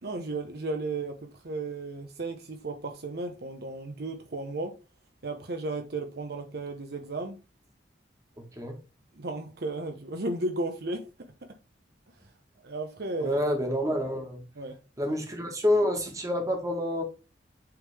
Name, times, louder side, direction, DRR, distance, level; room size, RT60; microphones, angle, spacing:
voice 1, 0.0-4.7 5.2-7.4 9.2-11.1 12.6-13.4 14.6-14.8 15.1-15.2, right 2 dB, 60° right, 0.8 m, -34 dB
voice 2, 13.2-14.4 15.0-17.0, left 1 dB, 20° right, 1.5 m, -28 dB
7.9 x 3.7 x 3.3 m
head